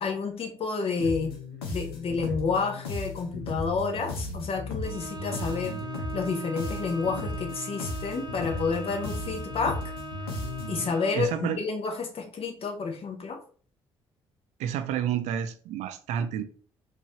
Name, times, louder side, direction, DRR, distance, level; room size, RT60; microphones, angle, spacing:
voice 1, 0.0-1.3 1.7-5.8 6.1-9.8 10.7-13.4, left 4 dB, 50° left, 3 dB, 1.2 m, -30 dB
sound 1, 1.0-10.9, left 3 dB, 85° left, 0.7 m, -36 dB
Bowed string instrument, 4.8-11.3, right 4 dB, 35° right, 0.8 m, -40 dB
voice 2, 11.1-11.6 14.6-16.4, right 9 dB, 70° right, 8 dB, 0.5 m, -29 dB
4.6 x 2.8 x 3.2 m, 0.42 s
hypercardioid pair, 45°, 12 cm